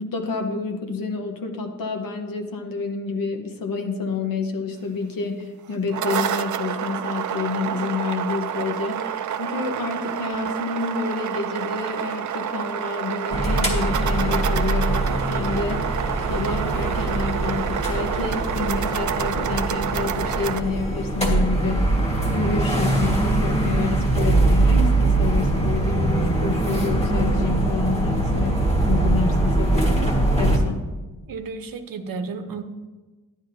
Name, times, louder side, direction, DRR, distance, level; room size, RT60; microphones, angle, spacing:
voice 1, 0.0-16.0 16.3-22.0 22.3-29.9 30.4-30.9, left 4 dB, 80° left, 4 dB, 1.1 m, -28 dB
sound 1, 5.7-20.6, right 9 dB, 60° right, 0.5 m, -28 dB
sound 2, 13.3-30.6, right 2 dB, 20° left, 1.5 m, -22 dB
voice 2, 31.3-32.6, right 4 dB, 80° right, 8 dB, 0.8 m, -32 dB
11.0 x 10.5 x 2.7 m, 1.2 s
wide cardioid pair, 150°, 34 cm